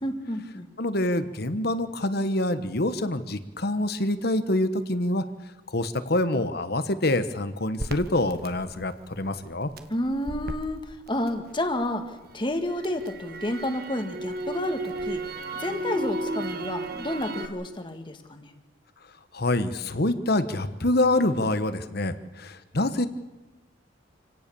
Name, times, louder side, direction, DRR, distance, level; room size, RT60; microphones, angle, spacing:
voice 1, 0.0-0.7 9.9-15.2 15.6-18.5, left 1 dB, 25° left, 6 dB, 1.8 m, -30 dB
voice 2, 0.8-5.2 5.7-9.7 19.3-23.1, left 1 dB, 55° left, 12 dB, 1.3 m, -26 dB
Crackle, 7.8-11.9 12.3-17.5, right 1 dB, 50° right, 1.4 m, -34 dB
27.5 x 17.5 x 7.0 m, 1.1 s
head